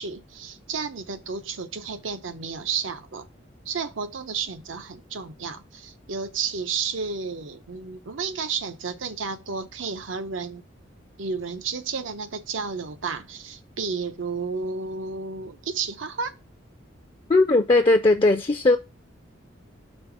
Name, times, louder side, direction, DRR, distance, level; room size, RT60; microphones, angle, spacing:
voice 1, 0.0-3.3 3.7-10.6 11.2-16.3, right 5 dB, 85° right, 0.7 m, -32 dB
voice 2, 17.3-18.8, left 2 dB, 25° left, 0.4 m, -18 dB
5.3 x 4.0 x 5.9 m
head